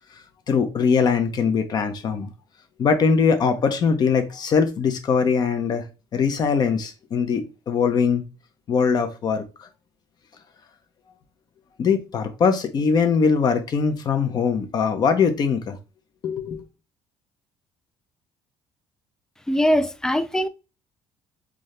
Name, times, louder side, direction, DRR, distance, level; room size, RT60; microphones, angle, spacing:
voice 1, 0.5-2.3 2.8-5.8 6.1-8.2 8.7-9.4 11.8-15.8 16.2-16.6, left 5 dB, 40° left, 0.8 m, -21 dB
voice 2, 19.5-20.5, equal, 5° left, 0.4 m, -21 dB
3.5 x 2.8 x 3.2 m
cardioid pair, 135°, 10 cm